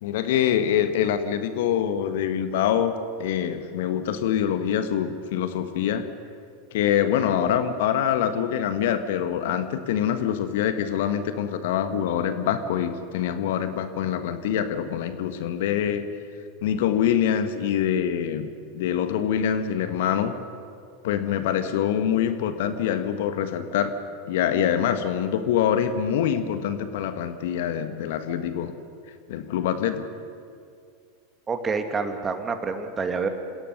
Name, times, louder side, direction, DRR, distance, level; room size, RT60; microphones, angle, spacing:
voice 1, 0.0-2.9 3.2-6.0 6.7-16.1 16.6-18.5 18.7-20.3 21.0-23.9 24.3-28.7 29.3-30.0, left 9 dB, 65° left, 9 dB, 1.4 m, -25 dB
voice 2, 31.5-33.3, right 5 dB, 25° right, 7 dB, 2.2 m, -27 dB
27.0 x 16.5 x 6.6 m, 2.4 s
figure-of-eight pair, 85°, 0 cm